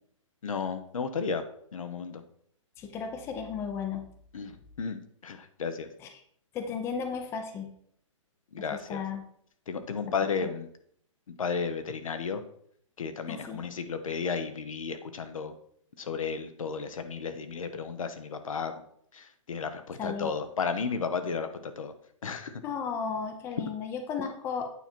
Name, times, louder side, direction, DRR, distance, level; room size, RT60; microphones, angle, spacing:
voice 1, 0.4-1.4 1.7-2.2 4.3-5.9 8.5-9.0 9.7-10.7 11.4-12.4 13.0-15.5 16.0-18.8 19.1-21.9 22.2-22.6, left 5 dB, 80° left, 9 dB, 1.0 m, -33 dB
voice 2, 2.8-4.0 6.5-7.7 8.9-9.2 13.3-13.6 20.0-20.3 22.6-24.7, left 6 dB, 15° left, 6 dB, 0.6 m, -34 dB
8.9 x 4.3 x 4.4 m, 0.66 s
hypercardioid pair, 145°, 17 cm